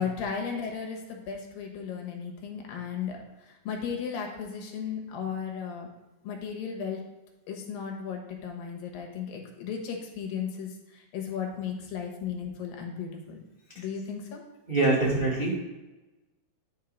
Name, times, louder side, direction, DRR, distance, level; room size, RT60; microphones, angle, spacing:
voice 1, 0.0-3.2 3.4-5.9 6.2-7.0 7.5-13.4 13.8-14.4, left 7 dB, 80° left, 1 dB, 3.0 m, -35 dB
voice 2, 14.7-15.6, right 2 dB, 60° right, -6 dB, 0.5 m, -24 dB
10.5 x 4.6 x 4.6 m, 1.1 s
omnidirectional pair, 4.1 m